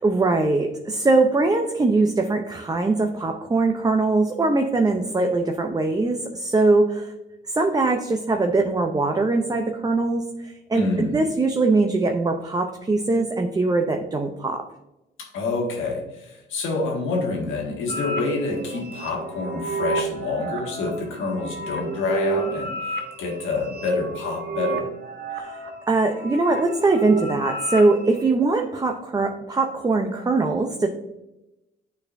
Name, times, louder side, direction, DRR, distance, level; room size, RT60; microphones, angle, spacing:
voice 1, 0.0-7.1 7.5-14.6 25.3-30.9, right 3 dB, 20° right, 4 dB, 0.6 m, -22 dB
voice 2, 10.7-11.2 15.2-24.9, left 3 dB, 85° left, 0 dB, 1.8 m, -27 dB
sound 1, 17.9-28.2, right 3 dB, 60° right, 1.1 m, -31 dB
9.4 x 4.4 x 2.6 m, 0.95 s
cardioid pair, 90°, 20 cm